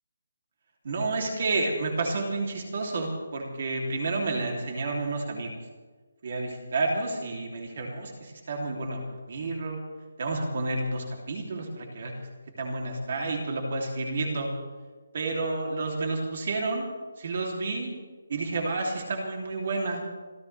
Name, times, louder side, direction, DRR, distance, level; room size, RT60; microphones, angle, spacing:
voice 1, 0.8-5.5 6.2-9.8 10.2-12.1 12.6-14.5 15.1-16.9 17.2-17.9 18.3-20.0, right 3 dB, 40° right, 0 dB, 2.9 m, -30 dB
27.0 x 15.0 x 3.4 m, 1.3 s
hypercardioid pair, 175°, 0 cm